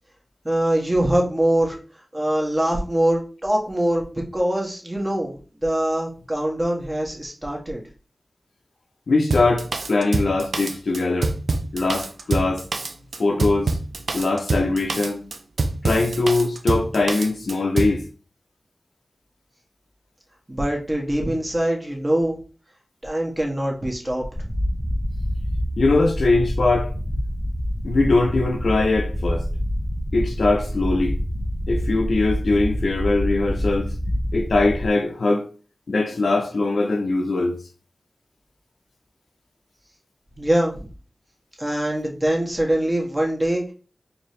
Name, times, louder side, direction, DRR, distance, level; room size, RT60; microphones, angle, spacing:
voice 1, 0.4-1.8 2.1-7.8 20.5-22.4 23.0-24.2 40.4-40.9 41.6-43.7, right 1 dB, 25° right, 1.6 m, -23 dB
voice 2, 9.1-11.3 11.7-12.6 13.2-13.8 14.1-15.3 15.8-18.0 25.8-26.9 27.8-29.5 30.1-31.2 31.7-33.9 34.3-35.4 35.9-37.6, left 3 dB, 85° left, 0.7 m, -21 dB
Drum kit, 9.3-18.0, right 3 dB, 85° right, 0.5 m, -26 dB
sound 1, 24.4-34.9, equal, 5° left, 0.7 m, -26 dB
4.3 x 2.9 x 3.2 m
cardioid pair, 45°, 0 cm